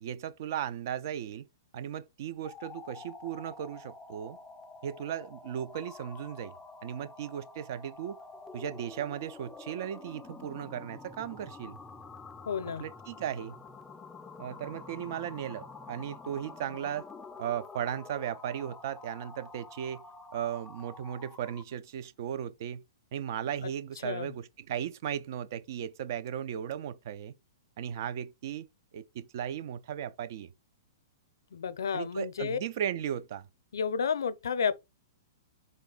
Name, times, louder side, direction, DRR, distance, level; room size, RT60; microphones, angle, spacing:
voice 1, 0.0-1.5 1.7-4.4 4.8-6.5 6.8-8.2 8.5-11.8 12.8-13.6 14.4-17.1 17.4-20.0 20.3-22.8 23.1-27.3 27.8-28.7 28.9-30.5 31.9-33.5, right 10 dB, 60° right, 0.5 m, -36 dB
sound 1, 2.3-21.8, left 4 dB, 10° left, 0.4 m, -48 dB
voice 2, 12.5-12.8 23.6-23.7 24.0-24.3 31.5-32.6 33.7-34.8, left 6 dB, 80° left, 0.6 m, -31 dB
3.8 x 2.3 x 3.9 m
hypercardioid pair, 130°, 2 cm